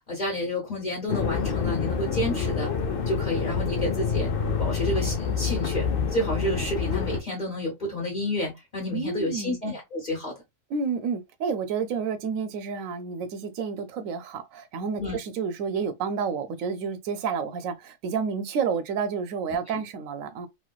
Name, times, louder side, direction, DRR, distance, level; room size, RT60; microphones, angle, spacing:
voice 1, 0.1-2.7 3.1-4.3 4.6-10.3 15.0-15.2, left 1 dB, 35° left, 1.1 m, -30 dB
sound 1, 1.1-7.2, left 6 dB, 55° left, 0.7 m, -27 dB
voice 2, 8.9-9.6 10.7-20.5, right 6 dB, 85° right, 1.0 m, -30 dB
3.1 x 2.8 x 2.3 m
omnidirectional pair, 1.4 m